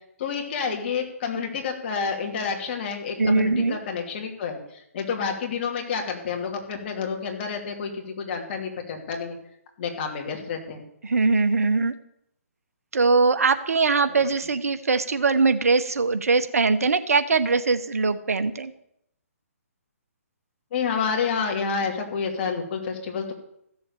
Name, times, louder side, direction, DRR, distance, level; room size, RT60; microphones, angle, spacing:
voice 1, 0.2-9.4 9.8-10.8 20.7-23.3, left 6 dB, 40° left, 2 dB, 2.7 m, -29 dB
voice 2, 3.2-3.8 11.0-11.9 12.9-18.7, right 4 dB, 70° right, 11 dB, 1.0 m, -21 dB
14.5 x 7.1 x 6.9 m, 0.76 s
figure-of-eight pair, 135°, 8 cm